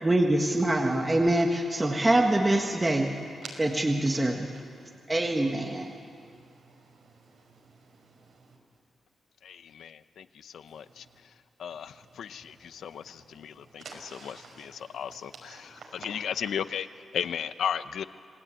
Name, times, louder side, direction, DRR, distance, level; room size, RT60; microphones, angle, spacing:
voice 1, 0.0-3.1 3.6-4.5 5.1-5.9, right 1 dB, 15° right, 2 dB, 1.5 m, -24 dB
voice 2, 3.4-8.6 10.7-11.1 11.8-16.5 17.2-17.3, right 4 dB, 55° right, 1 dB, 5.8 m, -51 dB
voice 3, 14.9-15.3 16.0-16.9 17.1-18.0, left 8 dB, 80° left, 13 dB, 0.8 m, -31 dB
27.5 x 20.0 x 9.1 m, 2.3 s
wide cardioid pair, 160°, 0 cm